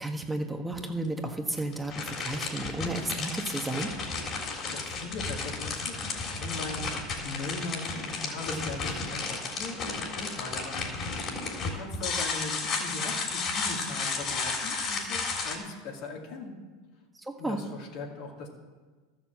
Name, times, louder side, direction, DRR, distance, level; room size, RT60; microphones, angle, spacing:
voice 1, 0.0-3.9 17.1-17.6, right 2 dB, 10° right, 3 dB, 1.4 m, -33 dB
sound 1, 0.7-0.8 1.6-15.6, left 4 dB, 45° left, 3.3 m, -33 dB
voice 2, 4.7-10.8 11.3-12.5 12.8-16.5 17.4-18.5, left 3 dB, 65° left, 0 dB, 2.7 m, -39 dB
13.0 x 7.2 x 7.5 m, 1.4 s
hypercardioid pair, 95°, 0 cm